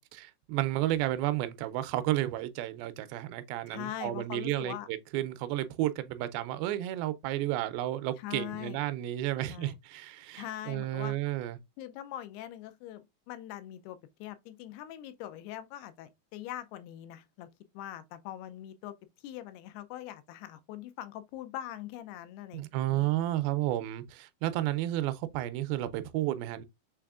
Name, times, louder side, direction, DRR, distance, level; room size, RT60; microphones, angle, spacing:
voice 1, 0.0-11.6 22.5-26.7, right 14 dB, 80° right, 2.3 m, -32 dB
voice 2, 3.7-4.9 8.2-8.8 9.5-9.8 10.4-11.2 11.8-17.5 17.7-18.9 19.2-23.1, left 13 dB, 85° left, 2.6 m, -42 dB
6.4 x 3.3 x 2.3 m
omnidirectional pair, 4.4 m